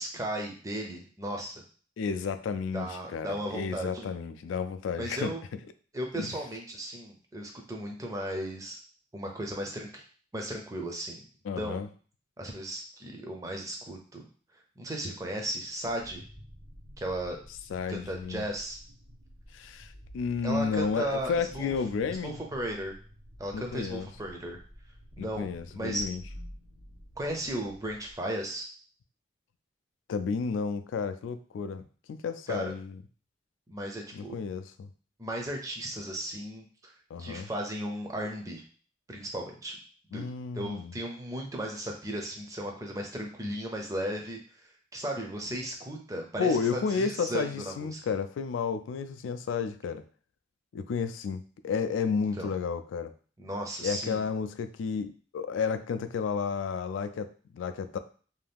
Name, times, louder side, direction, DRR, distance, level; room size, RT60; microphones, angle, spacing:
voice 1, 0.0-1.5 2.7-4.1 5.0-5.4 5.9-8.8 9.1-10.0 10.3-11.2 11.6-11.9 12.4-14.2 14.8-16.2 17.0-17.4 17.9-18.8 20.4-21.7 22.2-22.9 23.4-24.6 25.2-25.5 25.8-26.0 27.2-28.7 32.5-32.7 33.7-34.4 35.2-36.9 37.2-38.6 39.1-39.8 40.1-40.2 40.5-44.4 44.9-48.0 52.4-52.5 53.4-54.2, right 1 dB, 15° right, 1 dB, 0.5 m, -35 dB
voice 2, 2.0-5.3 6.1-6.3 11.5-11.9 17.7-18.5 19.5-22.3 23.5-24.1 25.2-26.2 30.1-31.8 32.1-33.0 34.1-34.9 37.1-37.5 40.1-40.9 46.4-50.0 50.7-53.1 53.8-58.0, left 5 dB, 85° left, 11 dB, 0.3 m, -32 dB
sound 1, 15.8-28.1, equal, 80° right, 1.2 m, -50 dB
2.7 x 2.3 x 3.4 m, 0.41 s
head